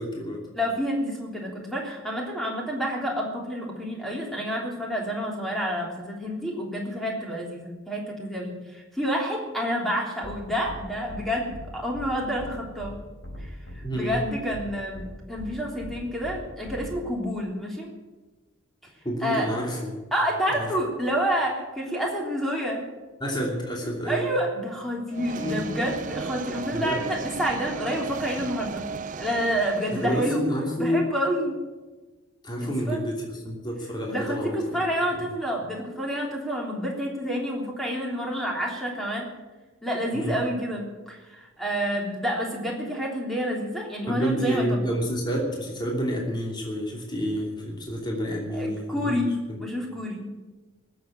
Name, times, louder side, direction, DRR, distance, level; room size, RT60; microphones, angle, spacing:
voice 1, 0.0-0.4 13.8-14.1 19.0-20.0 20.5-20.7 23.2-24.3 25.4-25.8 26.7-27.0 29.9-31.0 32.4-34.8 40.1-40.4 44.1-49.2 49.5-49.6, equal, 20° left, -1 dB, 2.9 m, -29 dB
voice 2, 0.5-13.0 13.4-17.9 19.2-19.5 20.1-22.8 24.1-28.9 29.2-30.4 30.8-31.6 32.6-33.1 34.1-39.3 39.8-44.8 48.5-50.3, equal, ahead, -2 dB, 3.3 m, -29 dB
sound 1, 10.2-10.4 10.6-10.8 11.1-11.2 11.5-11.6 11.9-12.1 12.4-12.5 12.8-12.9 13.2-13.8 14.1-14.2 14.5-14.6 14.9-15.1 15.4-15.5 15.8-15.9 16.2-16.4 16.6-16.9, left 1 dB, 70° left, 5.3 m, -39 dB
sound 2, 25.1-30.3, right 5 dB, 40° right, 0.4 m, -36 dB
18.5 x 7.8 x 8.8 m, 1.2 s
head